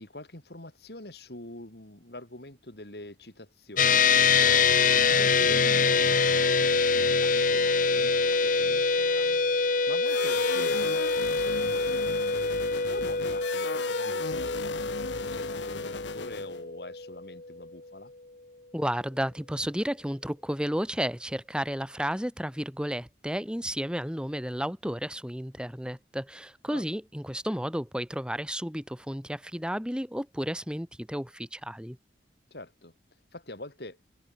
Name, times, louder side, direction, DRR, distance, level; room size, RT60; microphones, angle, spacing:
voice 1, 0.0-9.4 9.9-10.8 11.3-12.2 12.9-18.1 26.7-26.8 32.5-32.9 33.3-34.0, left 1 dB, 65° left, 3.4 m, -45 dB
sound 1, 3.8-17.4, left 4 dB, 50° left, 1.5 m, -25 dB
sound 2, 10.0-16.6, left 5 dB, 90° left, 0.8 m, -36 dB
voice 2, 18.7-32.0, equal, 5° right, 4.0 m, -32 dB
head